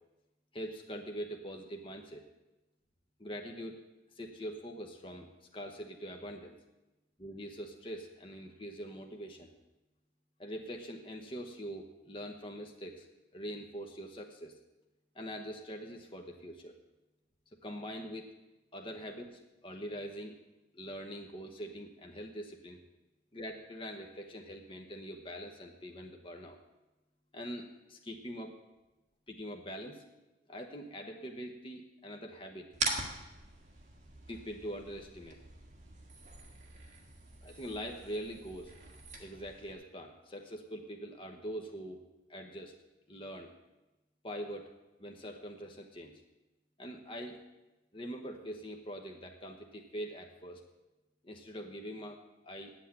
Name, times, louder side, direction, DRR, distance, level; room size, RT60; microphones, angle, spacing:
voice 1, 0.5-2.2 3.2-3.8 4.1-6.6 7.2-9.5 10.4-13.1 13.3-14.6 15.1-16.7 17.6-18.3 18.7-20.3 20.7-22.8 23.3-26.6 27.3-28.5 29.3-30.0 30.5-32.7 34.3-35.4 37.4-38.7 39.2-42.0 42.3-42.7 43.1-43.5 44.2-44.7 45.0-46.1 46.8-47.4 47.9-50.6 51.2-52.7, equal, 30° left, 3 dB, 1.0 m, -43 dB
sound 1, 32.7-39.7, right 3 dB, 40° right, 1.6 m, -42 dB
9.0 x 8.1 x 8.7 m, 1.0 s
head